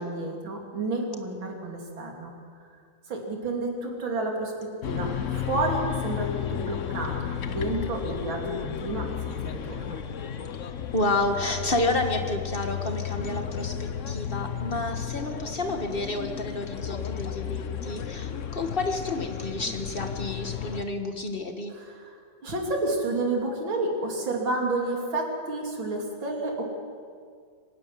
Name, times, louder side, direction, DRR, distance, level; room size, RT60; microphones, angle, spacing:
voice 1, 0.0-2.3 3.1-10.0 21.7-26.7, right 2 dB, 80° right, 0 dB, 4.0 m, -30 dB
sound 1, 4.8-20.8, left 9 dB, 55° left, 0.9 m, -33 dB
voice 2, 10.9-21.7, left 2 dB, 30° left, 5 dB, 1.7 m, -30 dB
24.5 x 13.0 x 9.6 m, 2.2 s
omnidirectional pair, 2.1 m